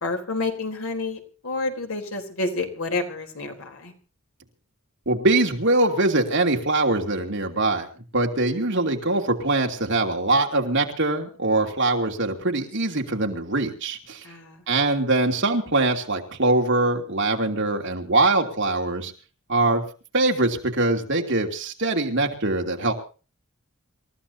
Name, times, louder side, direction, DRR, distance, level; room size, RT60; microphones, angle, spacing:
voice 1, 0.0-3.9 14.2-14.6, left 3 dB, 75° left, 4 dB, 3.7 m, -29 dB
voice 2, 5.1-7.9 8.1-14.2 14.7-19.1 19.5-19.8 20.1-22.9, right 2 dB, 60° right, 2 dB, 2.8 m, -23 dB
27.5 x 14.5 x 2.8 m, 0.36 s
head